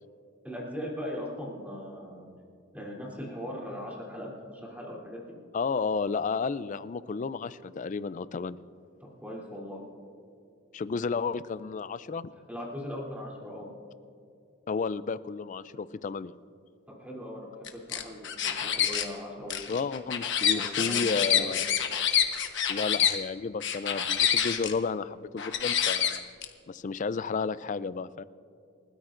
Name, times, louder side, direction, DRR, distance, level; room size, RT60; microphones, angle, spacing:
voice 1, 0.4-2.3 2.7-5.4 9.0-9.8 12.5-13.7 17.0-18.3 18.6-19.7 20.4-21.5, equal, 5° right, -4 dB, 3.0 m, -39 dB
voice 2, 5.5-8.6 10.7-12.3 14.7-16.3 19.7-21.6 22.7-26.3 26.7-28.2, left 4 dB, 35° left, 16 dB, 0.3 m, -32 dB
sound 1, 17.7-19.0 19.5-23.1 23.6-24.7 25.4-26.4, left 9 dB, 55° left, 1.1 m, -27 dB
29.5 x 13.0 x 2.5 m, 2.4 s
head